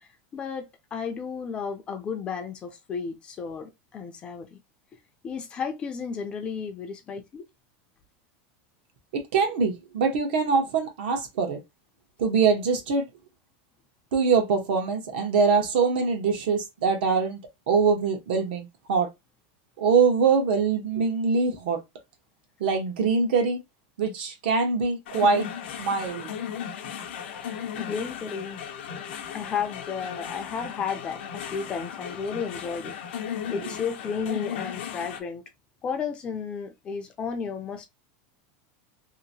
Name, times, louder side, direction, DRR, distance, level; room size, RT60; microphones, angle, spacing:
voice 1, 0.0-4.6 5.2-7.4 27.8-28.6 28.9-33.0 33.5-35.4 35.8-37.9, left 6 dB, 20° left, 0.4 m, -33 dB
voice 2, 9.1-11.6 12.2-13.0 14.1-17.4 17.7-19.1 19.8-21.8 22.6-23.6 24.0-25.5 25.8-26.3 33.6-33.7, right 5 dB, 75° right, 1.0 m, -23 dB
sound 1, 25.1-35.2, left 8 dB, 85° left, 0.7 m, -36 dB
2.8 x 2.6 x 2.7 m
supercardioid pair, 175°, 6 cm